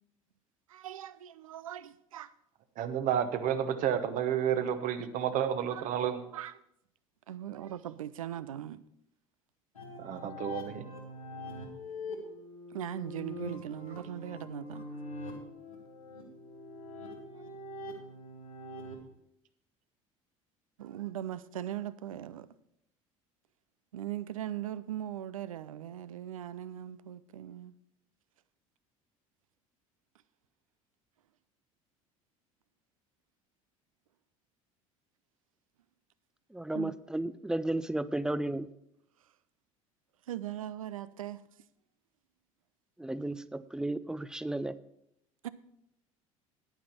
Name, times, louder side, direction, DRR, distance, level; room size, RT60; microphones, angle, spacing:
voice 1, 0.7-2.3 5.7-5.9 6.3-6.5 7.3-8.8 12.7-14.9 17.4-17.5 20.8-22.5 23.9-27.8 36.7-36.9 40.3-41.4 45.4-45.5, right 11 dB, 80° right, 0.5 m, -40 dB
voice 2, 2.8-6.2 10.0-10.8, right 9 dB, 50° right, 1.0 m, -30 dB
sound 1, 9.8-18.9, left 2 dB, 90° left, 1.7 m, -43 dB
voice 3, 36.5-38.7 43.0-44.8, right 1 dB, 5° right, 0.4 m, -33 dB
10.0 x 9.1 x 4.4 m
figure-of-eight pair, 65°, 17 cm